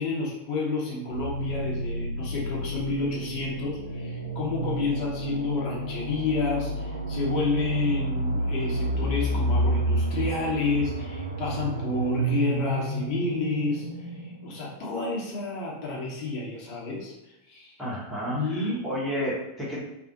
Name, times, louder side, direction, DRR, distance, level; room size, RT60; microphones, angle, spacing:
voice 1, 0.0-13.9 14.4-17.1 17.5-17.7 18.3-18.8, left 3 dB, 45° left, -5 dB, 0.7 m, -30 dB
sound 1, 1.1-14.9, right 1 dB, 85° right, 0.3 m, -30 dB
voice 2, 17.8-19.8, equal, 5° right, -7 dB, 0.9 m, -31 dB
2.5 x 2.1 x 2.7 m, 0.90 s
figure-of-eight pair, 90°, 0 cm